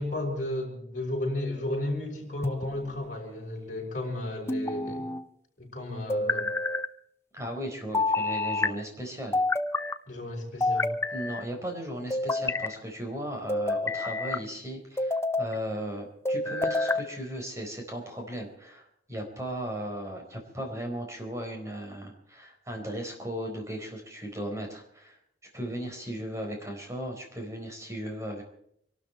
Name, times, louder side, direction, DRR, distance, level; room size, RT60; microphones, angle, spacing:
voice 1, 0.0-5.1 5.6-6.5 10.1-10.9, left 1 dB, 45° left, -1 dB, 5.8 m, -33 dB
sound 1, 2.4-3.1 4.5-5.2 6.1-6.9 7.9-8.7 9.3-10.0 10.6-11.5 12.1-12.7 13.5-14.4 15.0-15.5 16.3-17.1, left 2 dB, 15° left, 0.7 m, -28 dB
voice 2, 7.3-9.4 11.1-25.2 25.5-28.4, equal, 15° right, 2 dB, 4.3 m, -36 dB
26.0 x 12.5 x 4.5 m, 0.71 s
head